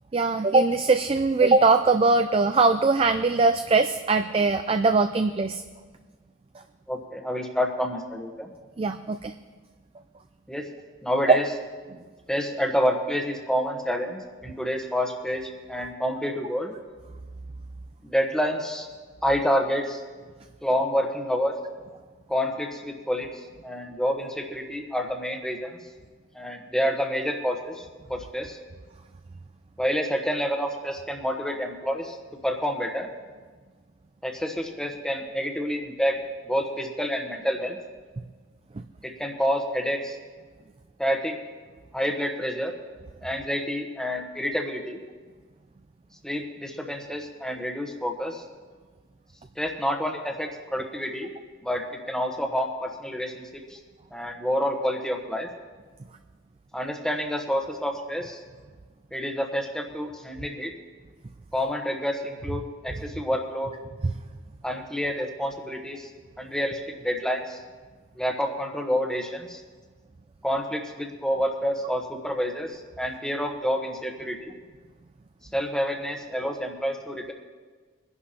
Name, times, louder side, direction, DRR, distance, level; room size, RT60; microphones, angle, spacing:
voice 1, 0.1-5.6 8.8-9.3, right 3 dB, 30° right, 8 dB, 0.3 m, -21 dB
voice 2, 6.9-8.5 10.5-10.7 11.0-11.5 12.3-16.7 18.0-18.9 19.2-20.0 20.6-21.5 22.3-23.3 23.6-25.8 26.3-28.6 29.8-32.2 32.4-33.1 34.2-36.2 36.4-37.8 39.0-40.2 41.0-41.4 41.9-42.7 43.2-45.0 46.2-48.4 49.6-51.3 51.6-53.8 54.1-55.5 56.7-58.4 59.1-60.7 61.5-63.7 64.6-66.1 66.4-67.6 68.1-69.6 70.4-74.5 75.5-77.3, equal, 5° left, 2 dB, 1.1 m, -28 dB
22.5 x 11.0 x 2.9 m, 1.5 s
head